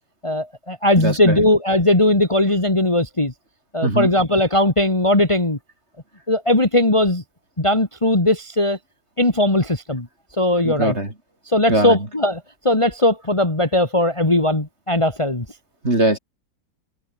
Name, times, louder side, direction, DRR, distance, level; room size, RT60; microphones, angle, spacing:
voice 1, 0.2-3.3 3.7-5.6 6.3-7.2 7.6-8.8 9.2-10.1 10.4-10.9 11.5-15.4, left 1 dB, 15° left, 2.5 m, -18 dB
voice 2, 1.0-1.4 3.8-4.1 10.6-11.1 11.7-12.0 15.8-16.2, right 1 dB, 30° right, 5.7 m, -20 dB
omnidirectional pair, 2.1 m